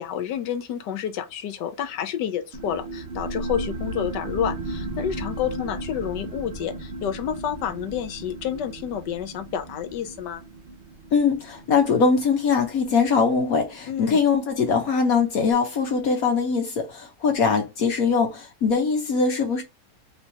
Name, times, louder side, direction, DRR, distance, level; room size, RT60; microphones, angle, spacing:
voice 1, 0.0-10.4 13.9-14.2, left 9 dB, 80° left, 1.3 m, -29 dB
sound 1, 2.5-13.7, right 2 dB, 50° right, 0.7 m, -35 dB
voice 2, 11.1-19.6, left 5 dB, 60° left, 1.1 m, -22 dB
3.8 x 2.8 x 4.4 m
omnidirectional pair, 1.9 m